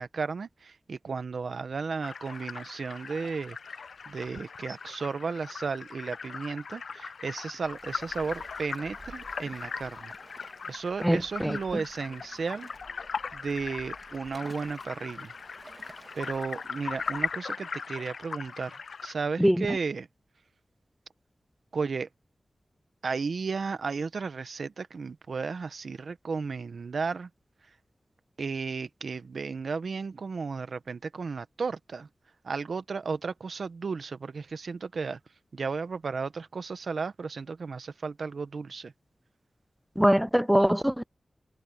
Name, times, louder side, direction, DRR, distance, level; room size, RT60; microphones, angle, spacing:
voice 1, 0.0-3.6 4.1-10.1 10.7-12.7 13.3-15.3 16.1-20.1 21.7-22.1 23.0-27.3 28.4-32.1 32.4-35.2 35.5-38.9, right 4 dB, 75° right, 1.1 m, -34 dB
sound 1, 2.0-19.1, left 5 dB, 80° left, 0.4 m, -39 dB
Waves surf, 7.6-17.3, right 2 dB, 30° right, 2.0 m, -52 dB
voice 2, 11.0-11.6 19.4-19.7 40.0-41.1, equal, 5° right, 0.3 m, -23 dB
wide cardioid pair, 95°, 0 cm